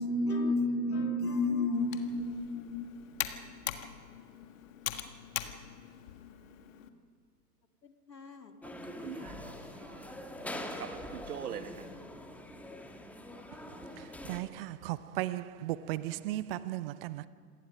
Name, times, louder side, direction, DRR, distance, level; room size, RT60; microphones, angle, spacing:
voice 1, 0.0-3.2 8.1-8.5 9.1-9.8, left 1 dB, 85° left, 2.1 m, -32 dB
Computer keyboard, 1.7-6.9, left 11 dB, 55° left, 1.7 m, -41 dB
sound 1, 8.6-14.4, left 1 dB, 5° left, 1.6 m, -44 dB
voice 2, 8.8-10.1 10.4-11.9, right 8 dB, 70° right, 1.9 m, -44 dB
voice 3, 14.3-17.3, right 15 dB, 35° right, 0.7 m, -36 dB
27.0 x 19.0 x 5.4 m
figure-of-eight pair, 110°, 48 cm